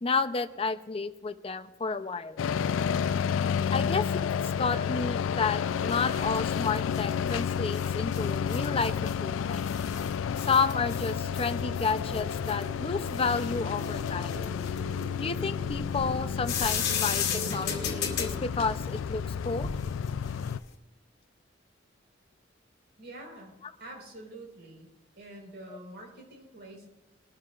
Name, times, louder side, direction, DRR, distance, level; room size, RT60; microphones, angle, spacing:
voice 1, 0.0-2.4 3.7-4.1 4.6-9.7 10.5-14.4 15.2-19.7, left 4 dB, 30° left, 10 dB, 0.5 m, -31 dB
sound 1, 2.4-20.6, left 7 dB, 75° left, 0.3 m, -31 dB
sound 2, 5.7-20.7, left 6 dB, 60° left, 2.1 m, -37 dB
vocal harmony, 11.2-18.4, right 1 dB, 35° right, 0.6 m, -45 dB
voice 2, 23.0-23.5 23.8-24.9 25.2-26.9, right 1 dB, 60° right, 0 dB, 4.4 m, -46 dB
21.0 x 12.5 x 2.4 m, 0.98 s
head